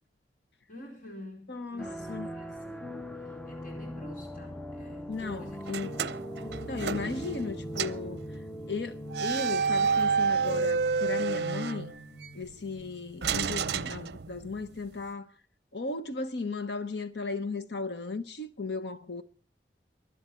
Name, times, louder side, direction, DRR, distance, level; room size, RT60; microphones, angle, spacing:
voice 1, 0.7-5.8, left 1 dB, 45° left, 4.2 m, -49 dB
voice 2, 1.5-2.3 5.1-6.0 6.7-8.2 8.7-11.9 12.3-15.3 15.7-19.2, left 3 dB, 70° left, 1.0 m, -36 dB
sound 1, 1.8-13.9, equal, 5° left, 0.5 m, -41 dB
sound 2, 5.7-7.5 7.8-8.1 9.1-12.3 13.2-14.6, right 5 dB, 60° right, 0.6 m, -29 dB
23.0 x 8.1 x 4.5 m
head